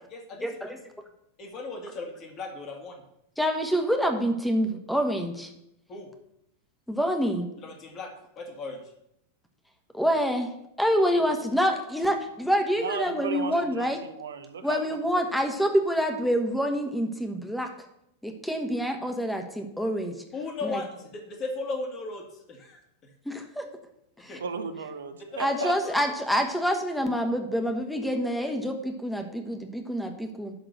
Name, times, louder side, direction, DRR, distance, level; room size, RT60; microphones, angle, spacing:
voice 1, 0.1-0.5 1.4-3.0 5.9-6.1 7.6-8.8 20.3-22.8 24.2-24.4 25.3-26.1, left 3 dB, 35° left, 3 dB, 2.0 m, -36 dB
voice 2, 3.4-5.5 6.9-7.5 9.9-10.5 10.8-14.0 14.6-17.7 18.2-20.1 20.6-20.8 23.2-23.6 24.2-24.3 25.4-30.5, equal, ahead, 5 dB, 1.4 m, -27 dB
voice 3, 12.8-14.8 15.1-15.3 24.4-25.7, right 6 dB, 65° right, 9 dB, 0.9 m, -35 dB
11.5 x 3.8 x 6.7 m, 0.79 s
figure-of-eight pair, 90°, 0 cm